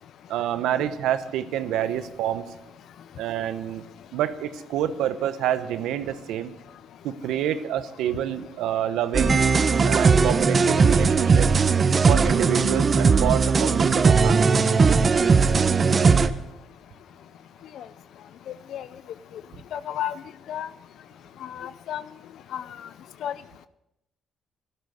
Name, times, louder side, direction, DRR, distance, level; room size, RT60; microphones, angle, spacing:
voice 1, 0.3-2.4 3.2-3.8 4.1-6.5 7.0-9.4 9.8-11.5 12.1-14.7, right 11 dB, 90° right, 12 dB, 1.0 m, -27 dB
sound 1, 9.1-16.3, right 5 dB, 40° right, 0.8 m, -19 dB
voice 2, 19.7-20.1 20.5-20.7 21.4-22.0 22.5-22.6 23.2-23.3, left 10 dB, 75° left, 14 dB, 0.5 m, -31 dB
12.5 x 12.5 x 6.4 m, 0.88 s
cardioid pair, 90°, 0 cm